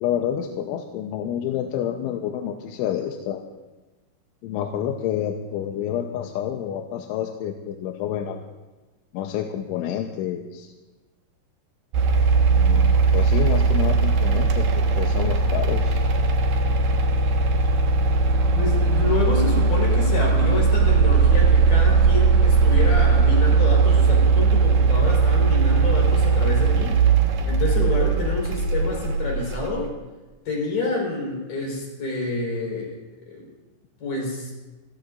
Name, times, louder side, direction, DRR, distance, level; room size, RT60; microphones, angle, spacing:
voice 1, 0.0-3.4 4.4-8.4 9.1-10.7 12.5-14.7 15.0-16.0, left 10 dB, 85° left, 3 dB, 3.2 m, -28 dB
sound 1, 11.9-29.7, right 4 dB, 65° right, 3.0 m, -19 dB
voice 2, 18.5-27.0 27.5-29.9 30.5-33.0 33.3-33.5 34.0-34.5, left 2 dB, 45° left, -2 dB, 5.8 m, -28 dB
26.5 x 17.0 x 2.5 m, 1.2 s
omnidirectional pair, 5.6 m